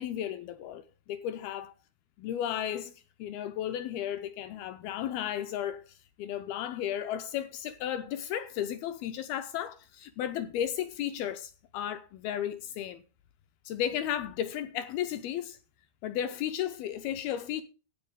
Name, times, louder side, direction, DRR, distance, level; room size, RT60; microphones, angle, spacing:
voice 1, 0.0-1.7 2.2-2.9 3.2-5.8 6.2-13.0 13.7-15.6 16.0-17.6, left 10 dB, 80° left, 2.2 m, -34 dB
14.0 x 8.8 x 3.5 m
omnidirectional pair, 5.0 m